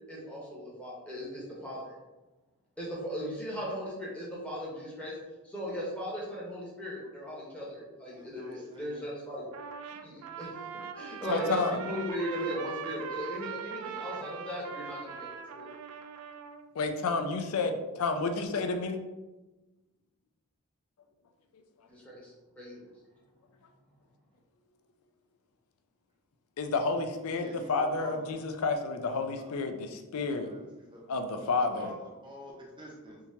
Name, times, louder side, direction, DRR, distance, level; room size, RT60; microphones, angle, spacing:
voice 1, 0.1-1.9 2.8-5.1 5.4-9.4 10.0-10.6 10.9-15.3 15.6-15.7 21.9-22.8, equal, 5° left, -6 dB, 1.0 m, -37 dB
voice 2, 8.1-9.1 27.4-28.4 29.4-29.5 30.4-31.0 31.4-31.9 32.2-33.2, equal, 20° right, -3 dB, 0.7 m, -47 dB
Trumpet, 9.5-16.7, right 6 dB, 75° right, 0.3 m, -41 dB
voice 3, 11.3-11.8 16.8-19.0 26.6-30.5 31.1-31.9, left 3 dB, 75° left, 5 dB, 0.4 m, -30 dB
3.5 x 2.9 x 2.7 m, 1.1 s
head